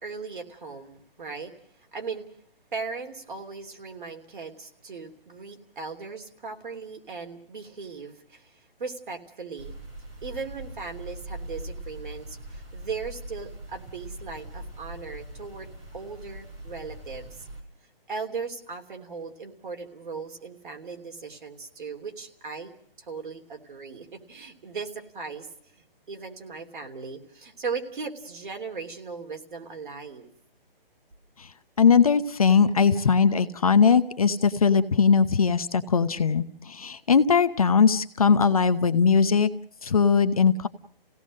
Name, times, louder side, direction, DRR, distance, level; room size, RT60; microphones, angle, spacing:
voice 1, 0.0-1.5 1.9-2.2 2.7-8.5 8.8-9.7 10.2-17.5 18.1-22.7 23.0-25.5 26.1-30.3, right 4 dB, 60° right, 3 dB, 3.1 m, -38 dB
sound 1, 9.6-17.6, right 1 dB, 20° right, 2.9 m, -41 dB
voice 2, 31.8-39.5 39.8-40.7, left 6 dB, 40° left, 11 dB, 0.8 m, -20 dB
28.5 x 17.0 x 6.4 m, 0.64 s
hypercardioid pair, 175°, 29 cm